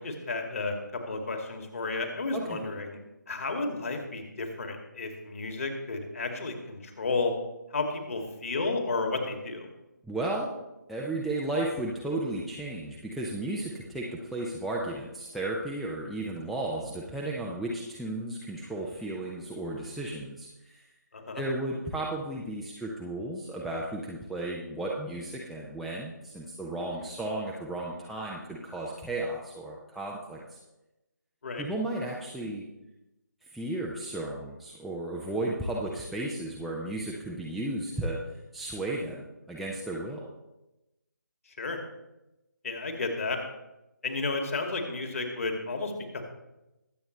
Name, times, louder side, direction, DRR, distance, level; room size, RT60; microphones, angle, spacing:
voice 1, 0.0-3.0 3.3-7.3 7.7-9.7 21.1-21.4 31.4-31.6 41.5-41.8 42.6-43.4 44.0-46.2, left 3 dB, 50° left, 3 dB, 2.4 m, -32 dB
voice 2, 2.3-2.7 10.0-10.5 10.9-20.8 21.4-30.6 31.6-32.6 33.5-38.2 38.5-39.2 39.5-40.3, right 2 dB, ahead, -6 dB, 0.4 m, -34 dB
22.0 x 7.9 x 3.2 m, 0.96 s
figure-of-eight pair, 155°, 10 cm